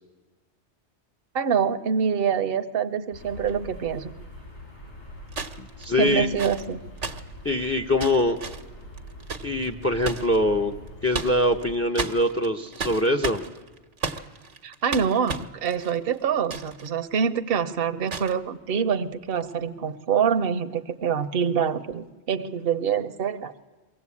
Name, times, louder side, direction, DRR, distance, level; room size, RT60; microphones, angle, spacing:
voice 1, 1.3-4.1 6.0-6.8 14.6-23.5, right 7 dB, 60° right, 8 dB, 1.0 m, -25 dB
sound 1, 3.1-11.8, equal, 70° left, 7.8 m, -43 dB
Stabbing sound, 3.4-3.5 5.3-10.4 10.9-11.6 11.9-16.9 17.2-17.3 18.1-18.4 19.3-19.5, right 4 dB, 85° right, 1.4 m, -34 dB
voice 2, 5.6-6.3 7.4-8.4 9.4-10.8 11.0-13.5, left 1 dB, 15° left, 6 dB, 0.7 m, -23 dB
23.0 x 16.0 x 8.5 m, 1.3 s
omnidirectional pair, 1.2 m